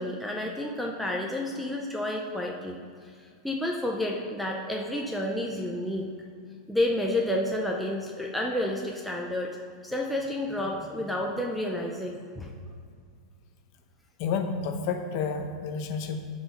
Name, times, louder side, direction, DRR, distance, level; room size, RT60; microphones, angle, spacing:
voice 1, 0.0-2.8 3.2-6.1 6.7-9.6 9.8-12.5, left 1 dB, ahead, -2 dB, 0.4 m, -30 dB
voice 2, 14.2-16.3, left 5 dB, 35° left, 6 dB, 0.7 m, -30 dB
11.5 x 5.0 x 4.0 m, 2.1 s
supercardioid pair, 175°, 3 cm